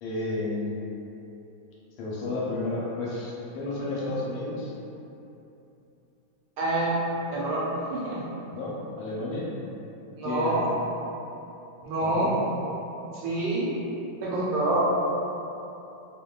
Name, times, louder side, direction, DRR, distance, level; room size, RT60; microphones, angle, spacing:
voice 1, 0.0-0.8 2.0-4.7 8.5-9.5 10.2-10.6 12.0-12.4, left 2 dB, 80° left, -7 dB, 1.4 m, -31 dB
voice 2, 6.6-6.9 7.3-7.6 7.9-8.2 10.2-10.7 11.8-12.3 13.1-13.7 14.2-14.8, right 2 dB, 75° right, -7 dB, 1.3 m, -26 dB
3.2 x 2.1 x 2.2 m, 2.9 s
omnidirectional pair, 2.2 m